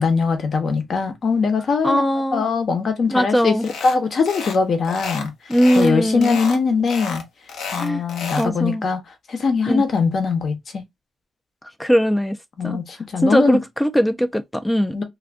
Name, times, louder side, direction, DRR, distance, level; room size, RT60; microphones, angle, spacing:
voice 1, 0.0-2.0 2.3-5.3 5.7-7.2 7.7-9.0 9.3-10.8 12.6-13.6 14.9-15.0, left 5 dB, 55° left, 0.9 m, -21 dB
voice 2, 1.8-2.4 3.1-3.7 5.5-6.4 7.7-8.0 8.4-8.8 9.7-9.8 11.8-12.4 12.6-12.8 13.2-15.0, equal, 5° left, 0.3 m, -19 dB
sound 1, 3.6-4.0 4.3-4.6 4.8-5.9 6.2-6.6 6.9-8.5, left 5 dB, 85° left, 0.8 m, -31 dB
2.5 x 2.5 x 3.4 m
cardioid pair, 105°, 0 cm